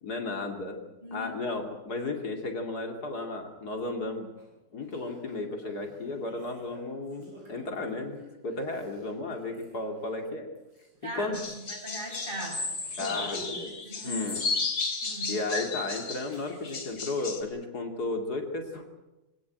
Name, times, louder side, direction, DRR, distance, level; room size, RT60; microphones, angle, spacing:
voice 1, 0.0-0.8 1.1-4.3 4.7-10.5 11.1-11.3 13.0-13.7 14.0-14.4 15.3-18.9, left 3 dB, 60° left, 4 dB, 3.0 m, -34 dB
voice 2, 1.0-1.3 11.0-11.4 11.7-12.7 13.8-14.4 15.0-15.4, right 1 dB, 25° right, 0 dB, 7.6 m, -38 dB
Laughter, 4.4-4.5 4.8-11.5 11.8-11.9 12.2-12.4 12.8-13.7 14.0-14.8 15.3-16.7, right 1 dB, 85° right, 8.1 m, -48 dB
sound 1, 11.3-17.4, left 4 dB, 85° left, 3.7 m, -34 dB
23.5 x 18.0 x 9.1 m, 1.0 s
omnidirectional pair, 1.9 m